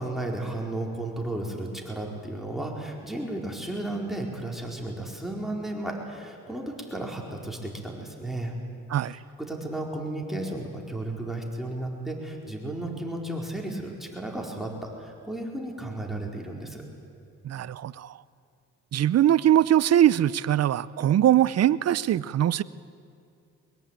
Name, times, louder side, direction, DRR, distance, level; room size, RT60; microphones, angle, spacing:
voice 1, 0.0-8.5 9.0-16.8, right 1 dB, ahead, 0 dB, 4.6 m, -34 dB
voice 2, 17.4-18.1 18.9-22.6, right 11 dB, 55° right, 18 dB, 0.7 m, -22 dB
22.5 x 21.5 x 9.1 m, 2.5 s
cardioid pair, 90°, 30 cm